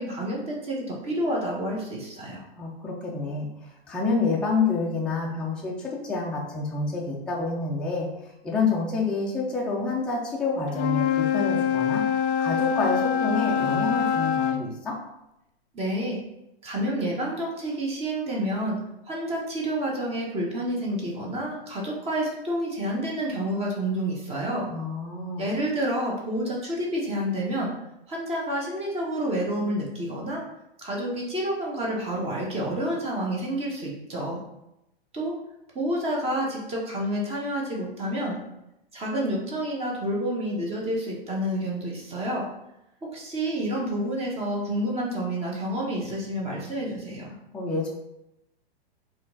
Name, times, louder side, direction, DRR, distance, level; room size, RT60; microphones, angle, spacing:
voice 1, 0.0-2.4 15.7-16.2 16.6-18.8 19.0-24.7 25.4-27.7 28.1-30.4 30.8-34.4 35.1-35.3 35.7-38.4 38.9-42.4 43.1-47.3, right 1 dB, 20° right, -2 dB, 1.0 m, -29 dB
voice 2, 2.6-8.1 8.4-12.0 12.4-15.0 24.7-25.5 47.5-47.9, left 3 dB, 5° left, -4 dB, 0.5 m, -28 dB
Wind instrument woodwind instrument, 10.7-14.7, left 8 dB, 60° left, 0.4 m, -24 dB
4.2 x 2.5 x 3.9 m, 0.87 s
hypercardioid pair, 120°, 31 cm